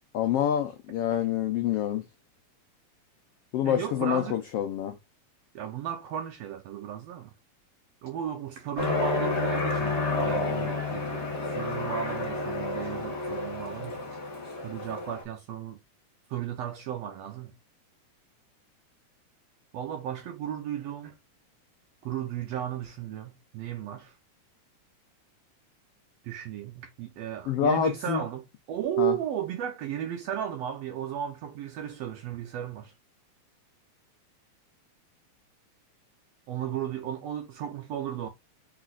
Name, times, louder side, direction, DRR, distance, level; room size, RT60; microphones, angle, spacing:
voice 1, 0.1-2.0 3.5-4.9 27.5-28.2 29.0-29.1, left 9 dB, 90° left, 1.3 m, -27 dB
voice 2, 3.6-4.4 5.5-7.3 8.0-14.2 14.6-15.8 16.3-17.6 19.7-21.2 22.0-24.2 26.2-32.9 36.5-38.3, right 10 dB, 75° right, 1.5 m, -35 dB
Aircraft, 8.8-15.2, left 3 dB, 35° left, 1.1 m, -30 dB
4.6 x 4.1 x 2.3 m
omnidirectional pair, 3.5 m